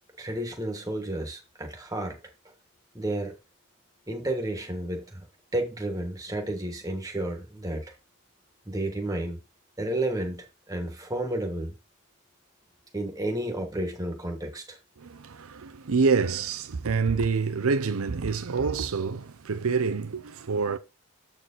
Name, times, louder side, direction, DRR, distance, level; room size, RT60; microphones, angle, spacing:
voice 1, 0.2-2.2 2.9-3.3 4.1-5.3 5.5-7.9 8.6-9.4 9.8-11.7 12.9-14.8, right 1 dB, 15° right, 1.4 m, -31 dB
voice 2, 15.0-20.8, right 4 dB, 80° right, 0.6 m, -27 dB
7.9 x 4.5 x 3.9 m
head